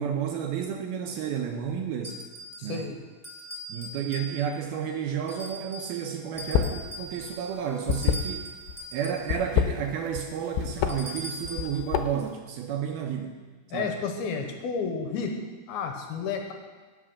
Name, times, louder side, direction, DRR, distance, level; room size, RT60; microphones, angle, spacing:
voice 1, 0.0-2.2 2.6-2.9 3.7-8.5 8.9-13.4 13.7-13.9, right 8 dB, 75° right, 3 dB, 2.4 m, -31 dB
sound 1, 2.0-2.8 3.2-4.7 5.3-6.0 6.4-9.3 10.9-11.7, right 1 dB, ahead, 0.5 m, -40 dB
voice 2, 2.6-3.0 13.7-15.3 15.7-16.5, left 5 dB, 75° left, 4 dB, 2.6 m, -31 dB
sound 2, 6.4-6.8 7.1-8.7 9.2-10.3 10.5-10.9 11.4-12.3, left 10 dB, 90° left, 2.8 m, -26 dB
17.0 x 6.0 x 6.3 m, 1.4 s
omnidirectional pair, 4.9 m